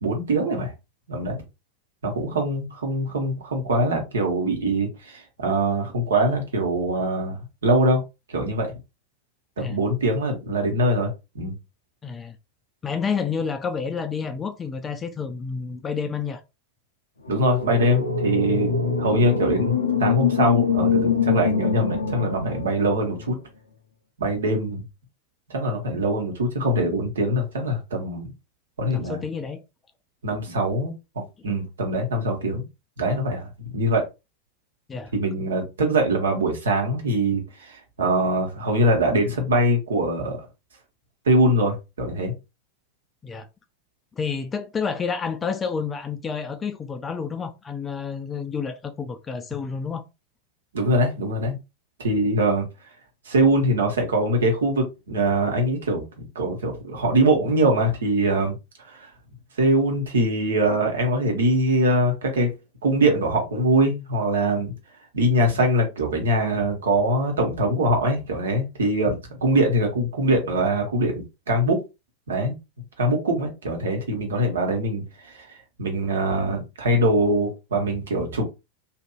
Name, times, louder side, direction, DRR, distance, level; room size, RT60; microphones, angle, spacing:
voice 1, 0.0-0.7 1.1-1.4 2.0-8.0 8.3-8.7 9.6-11.5 17.3-23.4 24.2-24.8 25.5-28.3 28.8-29.2 30.2-30.9 31.4-32.6 33.0-33.4 33.7-34.1 35.1-40.4 41.3-42.3 50.7-51.6 52.0-52.7 53.3-56.0 56.3-58.5 58.9-59.1 59.6-62.5 62.8-64.7 65.1-71.8 72.3-72.5 73.0-78.5, right 1 dB, 65° right, 1.0 m, -23 dB
voice 2, 12.0-12.4 12.8-16.4 28.9-29.6 34.9-35.1 43.2-43.5 44.2-50.0, left 6 dB, 20° left, 0.4 m, -29 dB
sound 1, 17.3-23.4, left 5 dB, 75° left, 0.5 m, -24 dB
2.8 x 2.5 x 2.3 m
figure-of-eight pair, 90°, 0 cm